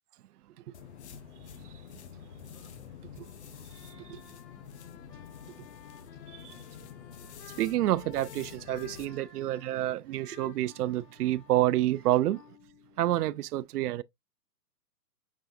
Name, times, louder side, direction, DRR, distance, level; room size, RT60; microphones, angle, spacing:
sound 1, 0.7-9.1, left 8 dB, 45° left, 0.6 m, -48 dB
sound 2, 3.6-13.4, left 9 dB, 85° left, 0.8 m, -54 dB
voice 1, 3.7-4.2 5.5-5.6 6.3-6.6 7.6-12.4 13.0-14.0, right 14 dB, 70° right, 0.5 m, -29 dB
6.2 x 3.2 x 2.6 m
hypercardioid pair, 165°, 49 cm